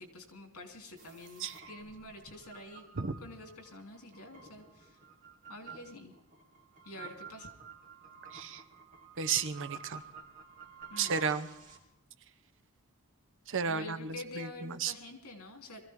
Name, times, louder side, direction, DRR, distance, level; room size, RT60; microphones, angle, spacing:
voice 1, 0.0-2.8 3.2-5.0 5.5-6.1 6.8-7.5 10.9-11.2 13.7-15.8, left 2 dB, 80° left, 3 dB, 3.4 m, -47 dB
sound 1, 1.0-11.8, right 6 dB, 35° right, 2.8 m, -51 dB
voice 2, 9.2-10.0 11.0-11.5 13.5-14.0 14.4-14.5 14.8-14.9, right 6 dB, 60° right, 10 dB, 0.8 m, -32 dB
23.0 x 15.0 x 3.7 m, 0.84 s
head